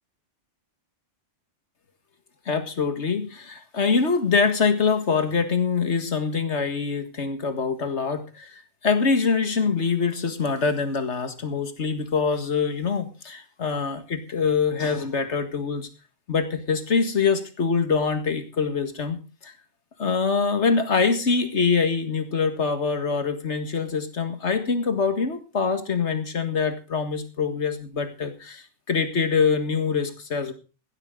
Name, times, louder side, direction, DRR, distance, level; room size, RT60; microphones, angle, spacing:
voice 1, 2.5-15.9 16.3-19.5 20.0-30.5, left 5 dB, 65° left, 9 dB, 2.0 m, -24 dB
16.0 x 12.5 x 3.8 m, 0.33 s
omnidirectional pair, 1.2 m